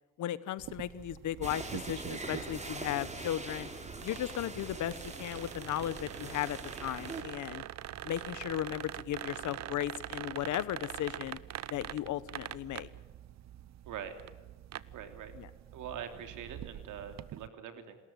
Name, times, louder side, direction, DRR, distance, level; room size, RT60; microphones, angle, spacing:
voice 1, 0.2-3.7 4.0-7.6 8.0-11.4 11.7-12.9 15.4-15.5, left 12 dB, 75° left, 17 dB, 1.1 m, -36 dB
sound 1, 0.6-17.5, right 12 dB, 65° right, 0.8 m, -45 dB
sound 2, 1.4-7.2, right 3 dB, 20° right, 3.7 m, -43 dB
voice 2, 14.9-15.3 15.7-18.0, right 8 dB, 80° right, 7 dB, 3.1 m, -43 dB
28.0 x 13.5 x 8.8 m, 1.3 s
cardioid pair, 90°, 30 cm